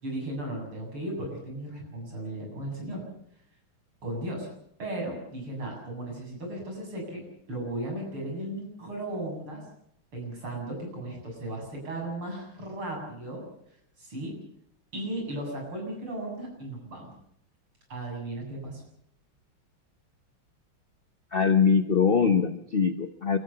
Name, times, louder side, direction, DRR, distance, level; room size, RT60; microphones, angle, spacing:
voice 1, 0.0-3.0 4.0-4.5 4.8-7.2 7.5-9.6 10.1-13.4 14.0-14.3 14.9-17.1 17.9-18.8, right 1 dB, 80° right, 0 dB, 8.4 m, -36 dB
voice 2, 21.3-23.4, left 6 dB, 35° left, 8 dB, 1.0 m, -22 dB
29.0 x 14.0 x 7.0 m, 0.71 s
omnidirectional pair, 2.3 m